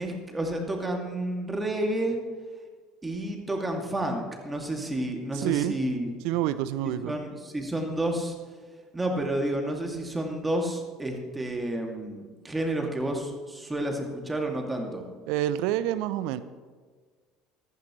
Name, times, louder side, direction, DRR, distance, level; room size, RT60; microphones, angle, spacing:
voice 1, 0.0-2.2 3.0-6.1 6.8-8.4 8.9-15.0, right 1 dB, 15° right, 2 dB, 2.4 m, -30 dB
voice 2, 5.3-5.8 6.2-7.2 15.3-16.4, right 13 dB, 60° right, 15 dB, 0.6 m, -27 dB
14.5 x 13.5 x 3.2 m, 1.5 s
figure-of-eight pair, 65°, 0 cm